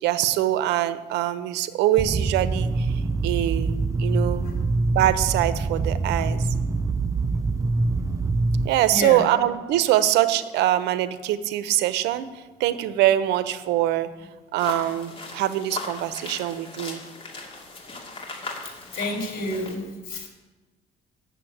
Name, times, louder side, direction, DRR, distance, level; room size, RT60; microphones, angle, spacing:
voice 1, 0.0-2.7 3.2-4.5 4.9-6.4 8.6-12.3 12.6-14.1 14.5-17.0, right 13 dB, 90° right, 14 dB, 0.7 m, -23 dB
sound 1, 2.0-8.7, right 3 dB, 20° right, 0.4 m, -24 dB
voice 2, 8.7-9.2 18.6-20.3, left 1 dB, 60° left, 3 dB, 3.5 m, -31 dB
sound 2, 14.6-19.7, left 3 dB, 30° left, 2.4 m, -38 dB
8.6 x 7.2 x 8.6 m, 1.2 s
cardioid pair, 110°, 17 cm